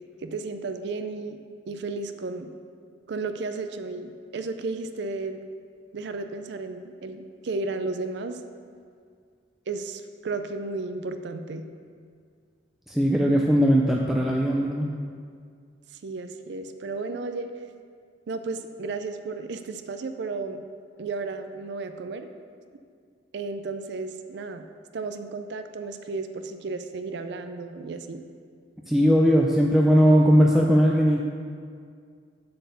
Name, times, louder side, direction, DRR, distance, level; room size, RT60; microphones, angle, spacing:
voice 1, 0.2-1.4 1.7-2.5 3.1-5.4 5.9-8.4 9.7-11.7 16.0-17.5 18.3-20.6 21.0-22.3 23.3-24.7 24.9-28.2, right 3 dB, 65° right, 8 dB, 0.4 m, -33 dB
voice 2, 12.9-14.9 28.9-31.2, equal, ahead, -2 dB, 0.4 m, -19 dB
7.6 x 4.2 x 6.8 m, 2.1 s
head